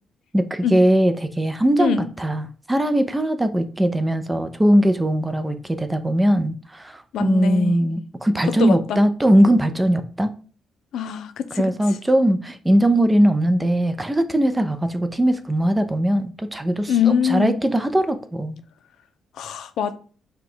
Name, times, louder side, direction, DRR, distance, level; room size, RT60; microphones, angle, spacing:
voice 1, 0.3-10.3 11.6-18.6, right 1 dB, 10° right, 0.5 m, -20 dB
voice 2, 7.1-7.8 8.6-9.0 10.9-11.7 16.9-17.6 19.4-20.0, left 8 dB, 75° left, 0.4 m, -23 dB
4.8 x 2.3 x 3.8 m
cardioid pair, 90°, 0 cm